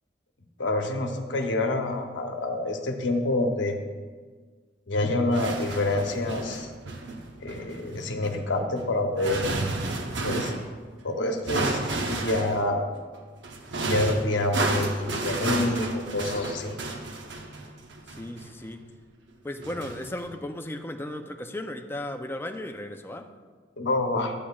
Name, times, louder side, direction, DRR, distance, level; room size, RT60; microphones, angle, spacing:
voice 1, 0.6-3.7 4.9-6.7 7.4-9.5 10.2-10.5 11.0-12.9 13.8-16.8 23.8-24.3, left 2 dB, 80° left, 4 dB, 0.9 m, -27 dB
sound 1, 5.3-10.7 11.5-12.7 13.4-18.7 19.6-20.3, right 2 dB, 75° right, 0.8 m, -32 dB
voice 2, 18.1-18.9 19.4-23.3, left 1 dB, 10° left, 5 dB, 0.5 m, -36 dB
10.5 x 8.6 x 2.4 m, 1.5 s
head